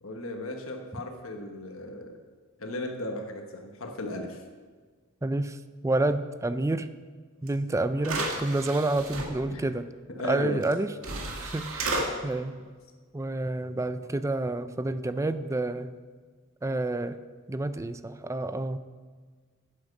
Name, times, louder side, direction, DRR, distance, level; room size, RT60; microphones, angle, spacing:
voice 1, 0.0-2.2 2.6-4.4 9.5-9.6 10.1-10.6, left 1 dB, 75° left, 3 dB, 1.2 m, -36 dB
voice 2, 5.2-5.6 5.8-6.9 7.4-9.8 10.2-12.0 12.2-12.6 13.1-16.0 16.6-17.2 17.5-18.8, right 2 dB, 15° right, 12 dB, 0.4 m, -29 dB
sound 1, 7.5-7.6 8.0-9.3 10.6-10.7 11.0-12.0, right 2 dB, 80° right, 2.1 m, -32 dB
11.5 x 9.0 x 5.3 m, 1.5 s
head